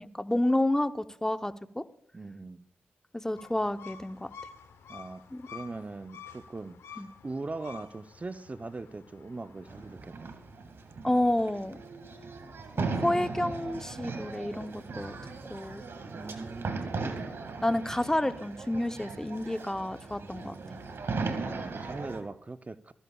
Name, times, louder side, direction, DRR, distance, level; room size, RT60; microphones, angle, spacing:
voice 1, 0.0-1.8 3.1-4.3 5.3-5.5 7.0-7.1 11.0-11.8 12.8-15.2 15.5-15.8 17.0-17.2 17.6-20.5, left 1 dB, 10° left, 0.8 m, -30 dB
voice 2, 2.1-2.6 4.9-6.8 7.2-10.3 12.9-13.3 16.1-16.9 20.4-20.8 21.4-22.9, right 3 dB, 35° right, 0.6 m, -41 dB
sound 1, 3.3-10.0, left 7 dB, 80° left, 0.8 m, -50 dB
sound 2, 9.7-22.2, right 4 dB, 65° right, 1.9 m, -38 dB
21.5 x 14.0 x 2.3 m
supercardioid pair, 45°, 4 cm